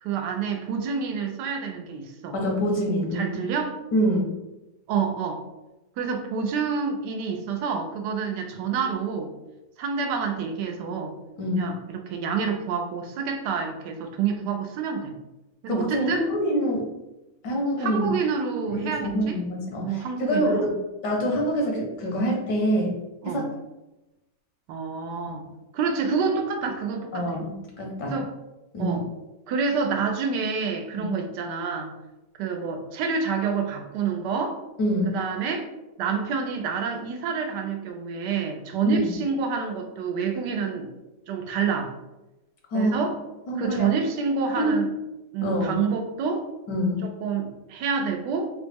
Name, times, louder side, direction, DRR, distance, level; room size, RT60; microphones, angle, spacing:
voice 1, 0.0-2.4 3.1-3.7 4.9-5.4 6.0-9.3 9.8-11.1 11.5-15.1 15.6-16.3 17.8-19.4 19.8-20.6 23.2-23.5 24.7-25.4 25.7-27.4 28.1-28.3 28.8-29.0 29.5-31.9 32.4-34.6 35.1-35.7 36.0-40.9 41.3-41.9 42.7-43.2 43.6-44.9 45.3-46.4 47.0-48.5, right 5 dB, 80° right, 4 dB, 1.2 m, -28 dB
voice 2, 2.3-3.4 3.9-4.3 11.4-11.7 15.7-16.9 17.4-18.1 18.7-20.7 21.0-22.9 23.2-23.4 27.1-28.2 28.7-29.0 31.0-31.1 34.8-35.2 38.9-39.1 42.7-43.0 43.5-43.9 44.5-44.8 45.4-45.7 46.7-47.0, equal, 80° left, 0 dB, 1.5 m, -25 dB
3.8 x 2.0 x 3.3 m, 0.98 s
omnidirectional pair, 1.8 m